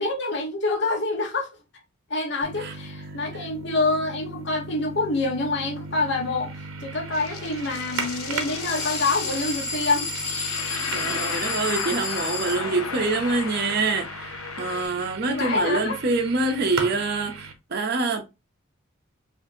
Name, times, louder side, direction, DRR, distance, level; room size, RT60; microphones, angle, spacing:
voice 1, 0.0-1.5 2.1-6.5 6.8-10.1 15.3-16.0, left 3 dB, 55° left, 1.1 m, -26 dB
sound 1, 2.4-17.5, right 4 dB, 80° right, 0.8 m, -37 dB
sound 2, 7.1-14.9, left 8 dB, 85° left, 0.5 m, -34 dB
sound 3, 8.6-12.6, left 3 dB, 20° left, 1.0 m, -32 dB
voice 2, 10.9-18.2, right 3 dB, 50° right, 0.6 m, -26 dB
4.9 x 2.6 x 2.6 m
head